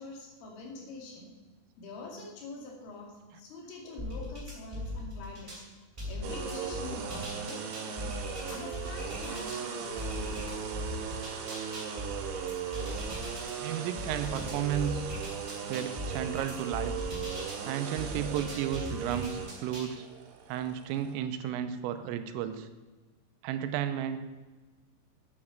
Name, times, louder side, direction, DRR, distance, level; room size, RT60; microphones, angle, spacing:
voice 1, 0.0-1.3 1.8-5.6 6.1-8.1 8.5-10.7, left 2 dB, 75° left, 0 dB, 4.9 m, -45 dB
sound 1, 4.0-5.6 6.0-9.6 10.0-13.5 14.0-17.6 18.0-19.9, left 1 dB, 15° right, 2.3 m, -39 dB
sound 2, 6.2-21.1, right 7 dB, 70° right, 3.5 m, -38 dB
voice 2, 13.6-15.1 15.7-16.9 17.7-20.0 20.5-22.7 23.4-24.2, right 10 dB, 90° right, 10 dB, 3.4 m, -33 dB
9.8 x 8.9 x 7.2 m, 1.2 s
omnidirectional pair, 5.8 m